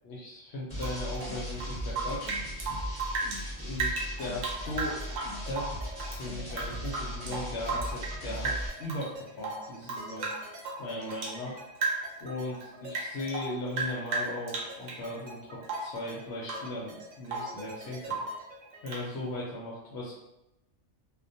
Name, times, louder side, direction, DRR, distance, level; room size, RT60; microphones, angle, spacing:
voice 1, 0.0-2.4 3.6-5.0 5.5-5.7 6.1-8.5 8.8-10.3 10.8-11.6 12.2-18.2 18.8-20.1, left 1 dB, 65° left, -5 dB, 0.8 m, -37 dB
sound 1, 0.7-8.7, equal, 5° left, 0.9 m, -38 dB
Rain / Drip, 0.8-3.4 3.7-6.2 6.5-8.2 8.4-9.1 9.4-11.4 11.8-12.2 12.5-15.1 15.6-16.0 16.4-16.7 17.0-17.6 18.0-18.4 18.9-19.1, right 3 dB, 80° right, 0.9 m, -35 dB
sound 2, 4.2-18.9, right 2 dB, 50° right, 0.6 m, -47 dB
2.3 x 2.1 x 2.6 m, 0.91 s
omnidirectional pair, 1.3 m